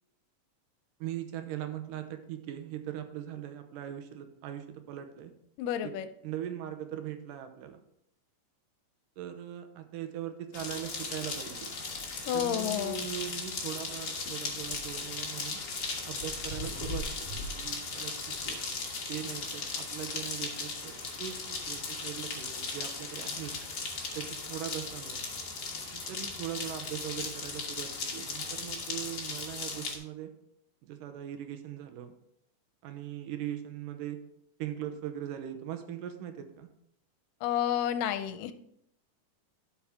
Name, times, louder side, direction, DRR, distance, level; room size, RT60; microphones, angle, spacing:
voice 1, 1.0-5.3 5.8-5.9 6.2-7.8 9.2-11.7 12.3-15.6 16.1-18.6 19.1-23.5 24.2-25.2 25.9-30.3 30.8-32.1 32.8-34.2 34.6-36.7, right 10 dB, 80° right, 7 dB, 2.4 m, -40 dB
voice 2, 5.6-6.1 12.3-13.0 37.4-38.5, left 10 dB, 85° left, 11 dB, 2.2 m, -30 dB
sound 1, 10.5-30.0, left 4 dB, 45° left, 1.4 m, -37 dB
11.5 x 5.8 x 3.6 m, 0.73 s
omnidirectional pair, 3.8 m